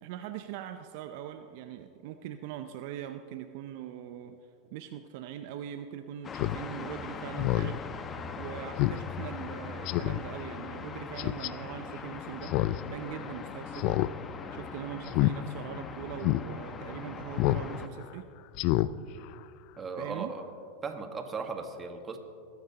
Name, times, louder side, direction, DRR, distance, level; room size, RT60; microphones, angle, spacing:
voice 1, 0.0-4.4 4.7-7.8 8.4-12.6 12.9-14.0 14.5-18.3 20.0-20.3, right 11 dB, 65° right, 8 dB, 0.5 m, -41 dB
sound 1, 6.2-17.9, left 6 dB, 30° left, 0.9 m, -41 dB
Speech synthesizer, 6.3-6.6 7.0-7.1 7.4-7.7 8.1-8.2 8.8-9.0 9.3-9.4 9.9-10.2 11.2-11.5 12.4-12.8 13.1-13.2 13.8-14.1 14.4-14.6 15.1-15.3 15.8-15.9 16.2-16.4 17.4-17.7 18.0-18.1 18.5-18.9 19.2-19.3, left 18 dB, 55° left, 0.4 m, -27 dB
voice 2, 19.8-20.5 20.8-22.2, right 4 dB, 25° right, 5 dB, 1.5 m, -37 dB
21.0 x 10.5 x 2.9 m, 2.4 s
hypercardioid pair, 105°, 0 cm